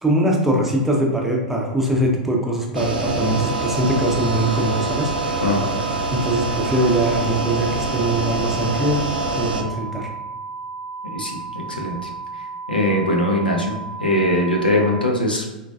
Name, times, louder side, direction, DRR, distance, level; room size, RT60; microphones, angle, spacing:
voice 1, 0.0-5.6 6.1-9.0 9.4-10.1, right 1 dB, 5° right, -1 dB, 0.6 m, -22 dB
sound 1, 2.7-9.6, right 3 dB, 75° right, 0.4 m, -25 dB
sound 2, 3.2-15.1, right 4 dB, 50° right, 0.8 m, -34 dB
voice 2, 5.4-5.7 11.1-11.4 11.8-12.0 12.7-13.7 14.0-15.4, left 1 dB, 85° left, 0 dB, 0.6 m, -20 dB
3.7 x 2.3 x 2.4 m, 1.1 s
figure-of-eight pair, 95°, 5 cm